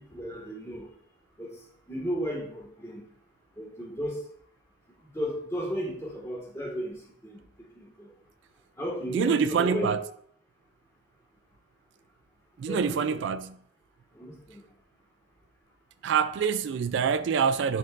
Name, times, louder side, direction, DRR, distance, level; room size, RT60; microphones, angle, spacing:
voice 1, 0.1-0.9 1.4-1.5 1.9-3.0 3.6-4.2 5.1-6.9 7.2-7.4 7.7-8.1 8.8-9.9 12.7-13.2 14.1-14.6, equal, 15° left, 1.7 m, -34 dB
voice 2, 9.1-10.0 12.6-13.6 16.0-17.8, right 6 dB, 65° right, 0.3 m, -26 dB
10.5 x 4.3 x 2.5 m
head